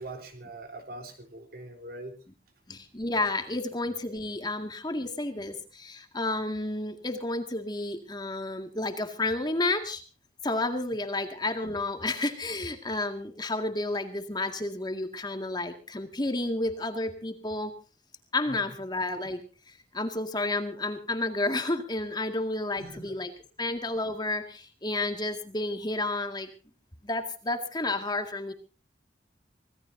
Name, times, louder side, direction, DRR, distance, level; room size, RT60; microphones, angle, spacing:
voice 1, 0.0-2.2 18.5-18.8 22.7-23.1, right 2 dB, 55° right, 7 dB, 3.8 m, -42 dB
voice 2, 2.7-10.0 10.4-17.7 18.3-19.4 19.7-23.3 23.6-26.5 27.0-28.5, left 2 dB, 25° left, 6 dB, 2.1 m, -31 dB
25.5 x 17.5 x 2.7 m, 0.35 s
head